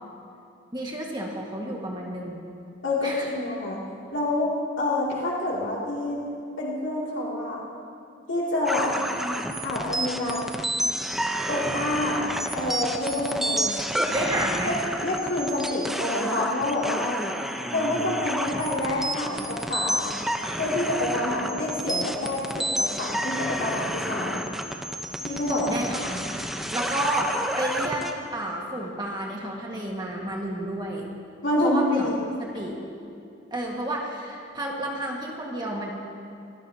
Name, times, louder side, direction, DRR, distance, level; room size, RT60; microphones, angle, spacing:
voice 1, 0.7-2.5 3.0-3.3 9.0-9.4 14.0-14.7 25.5-26.3 26.7-31.1 31.6-32.1 32.4-32.8 33.5-35.9, right 1 dB, 25° right, -2 dB, 1.7 m, -31 dB
voice 2, 2.8-3.8 4.1-6.2 6.6-7.6 8.3-9.0 9.6-10.5 11.5-12.2 12.5-13.8 14.6-14.7 15.0-17.2 17.7-20.2 20.6-24.4 25.2-25.7 31.4-32.2, left 1 dB, 85° left, -5 dB, 2.7 m, -27 dB
sound 1, 8.7-28.1, right 1 dB, ahead, 0.8 m, -30 dB
25.5 x 19.0 x 2.9 m, 2.6 s
head